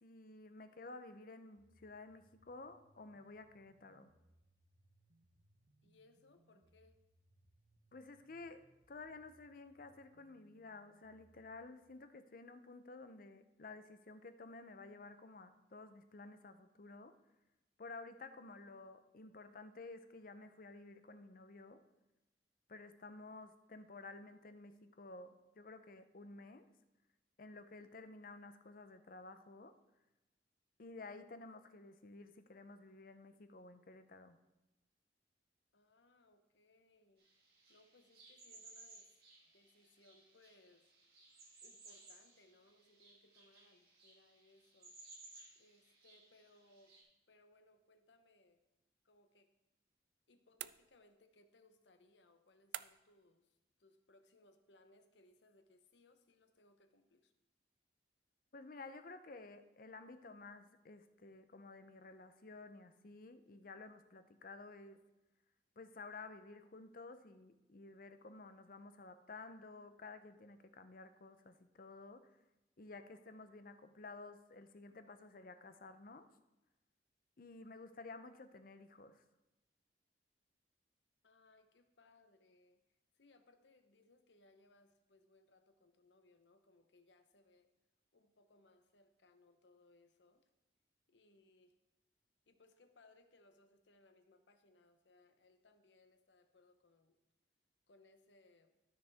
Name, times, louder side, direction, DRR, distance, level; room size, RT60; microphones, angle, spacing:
voice 1, 0.0-4.1 7.9-17.1 17.8-21.8 22.7-26.7 27.4-29.7 30.8-34.4 58.5-65.0 65.8-72.3 72.8-76.3 77.4-79.2, left 3 dB, 50° left, 10 dB, 0.6 m, -53 dB
sound 1, 1.6-11.7, right 1 dB, 45° right, 1.0 m, -73 dB
voice 2, 5.8-7.0 35.7-39.2 39.5-40.9 41.6-45.0 45.5-47.0 47.3-48.6 49.0-49.5 50.3-57.3 81.2-87.7 88.1-90.5 91.1-91.8 92.5-97.2 97.9-98.7, left 2 dB, 85° left, 8 dB, 0.9 m, -68 dB
sound 2, 37.2-47.0, right 2 dB, 60° right, 2.4 m, -61 dB
sound 3, 50.6-51.3 52.7-53.2, right 13 dB, 80° right, 0.3 m, -48 dB
13.0 x 6.4 x 3.5 m, 0.98 s
head